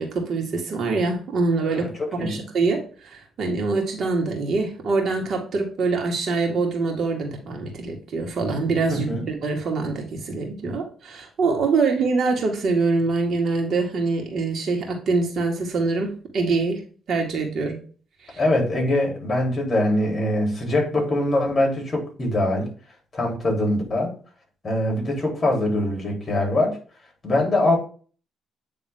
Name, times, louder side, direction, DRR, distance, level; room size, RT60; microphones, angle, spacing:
voice 1, 0.0-1.9 2.2-16.8 17.1-17.8 18.2-18.4, right 3 dB, 60° right, 2.1 m, -24 dB
voice 2, 1.7-2.5 8.9-9.3 18.4-22.7 23.1-24.1 24.6-26.8 27.2-27.8, left 1 dB, 30° left, 3.7 m, -23 dB
9.1 x 3.5 x 3.6 m
cardioid pair, 90°, 0 cm